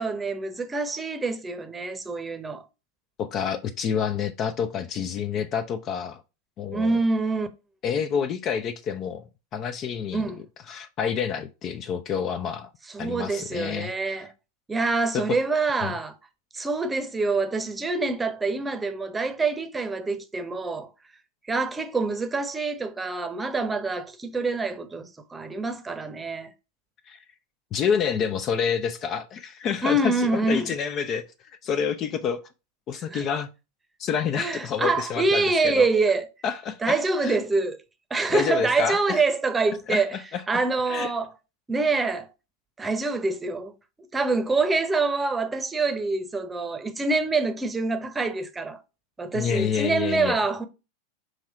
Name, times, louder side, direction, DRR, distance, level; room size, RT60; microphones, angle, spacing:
voice 1, 0.0-2.6 6.7-7.5 10.1-10.4 12.9-14.3 14.7-16.2 16.5-20.9 21.5-26.5 29.8-30.7 33.1-33.2 34.4-36.3 36.8-37.8 38.1-40.2 40.5-41.3 41.7-42.3 42.8-43.7 44.1-48.8 49.2-50.7, right 3 dB, 10° right, 0.9 m, -26 dB
voice 2, 3.2-6.2 6.6-6.9 7.8-10.3 10.7-12.7 13.0-14.3 15.1-15.2 15.8-15.9 27.1-27.2 27.7-31.2 31.6-32.4 32.9-33.5 34.0-35.9 36.4-37.4 38.3-39.2 39.9-40.6 40.9-41.1 49.3-50.4, left 7 dB, 30° left, 0.5 m, -28 dB
6.4 x 3.1 x 4.8 m
figure-of-eight pair, 90°, 0 cm